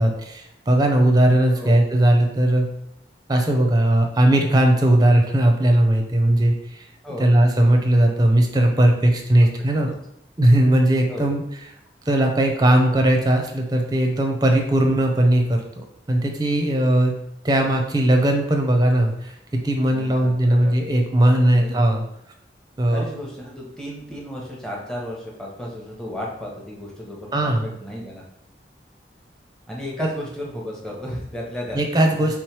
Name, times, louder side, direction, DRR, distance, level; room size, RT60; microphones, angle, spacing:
voice 1, 0.0-2.7 3.3-6.8 7.2-9.9 10.4-11.4 12.1-17.1 17.4-22.0 22.8-23.0 27.3-27.6 31.7-32.4, right 1 dB, 20° right, 3 dB, 0.6 m, -18 dB
voice 2, 7.0-7.4 9.8-9.9 11.1-11.3 19.9-20.8 21.5-21.8 22.9-28.2 29.7-31.8 32.1-32.4, equal, 5° left, -3 dB, 0.8 m, -34 dB
3.6 x 3.1 x 4.6 m, 0.76 s
head